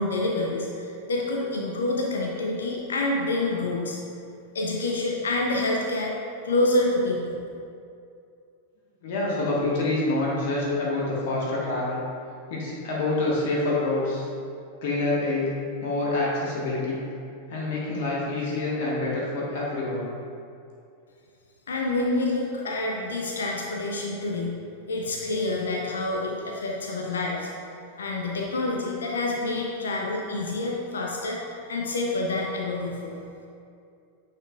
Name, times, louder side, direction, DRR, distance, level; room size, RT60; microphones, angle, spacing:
voice 1, 0.0-4.0 4.5-6.1 6.4-7.4 21.7-24.6 24.9-27.5 28.0-33.2, left 2 dB, 70° left, -1 dB, 0.6 m, -27 dB
voice 2, 9.0-12.0 12.5-14.3 14.8-17.0 17.5-20.0, left 2 dB, 50° left, -5 dB, 1.4 m, -27 dB
9.0 x 4.5 x 2.4 m, 2.5 s
figure-of-eight pair, 90°, 0 cm